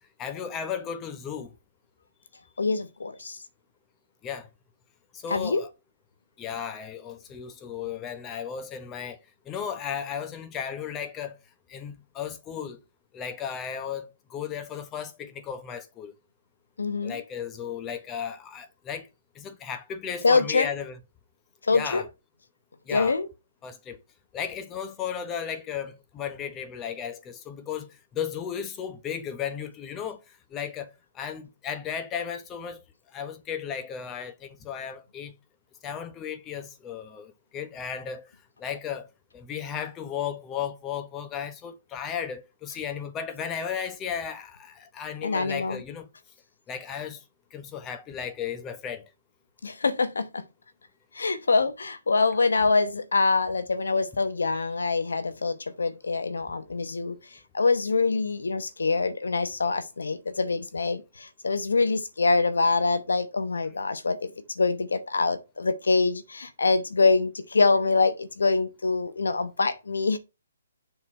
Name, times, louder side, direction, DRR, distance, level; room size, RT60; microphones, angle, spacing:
voice 1, 0.2-1.5 4.2-4.5 5.1-5.7 6.4-9.2 9.5-11.3 11.7-12.8 13.1-16.1 17.0-19.1 19.3-21.0 21.7-22.0 22.9-23.1 23.6-24.0 24.3-30.2 30.5-32.8 33.1-35.3 35.8-38.3 38.6-39.1 39.3-46.1 46.7-47.2 47.5-49.0, left 8 dB, 15° left, 0.9 m, -35 dB
voice 2, 2.6-3.4 5.3-5.6 16.8-17.2 20.2-20.7 21.6-22.0 22.9-23.3 45.2-45.8 49.6-50.4 51.1-57.2 57.5-70.2, left 4 dB, 90° left, 1.0 m, -25 dB
7.1 x 4.0 x 5.4 m
hypercardioid pair, 155°, 0 cm